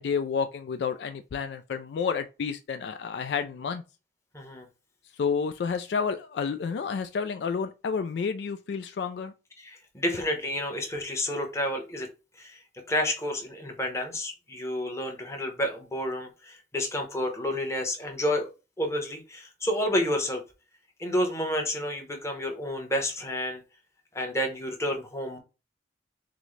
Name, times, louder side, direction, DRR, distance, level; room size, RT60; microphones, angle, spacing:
voice 1, 0.0-3.8 5.1-9.3, left 6 dB, 60° left, 0.3 m, -30 dB
voice 2, 4.3-4.7 9.6-12.1 12.4-12.6 12.9-18.5 18.8-20.4 21.0-23.6 24.1-25.4, left 1 dB, 15° left, 0.9 m, -30 dB
6.0 x 2.1 x 3.2 m
head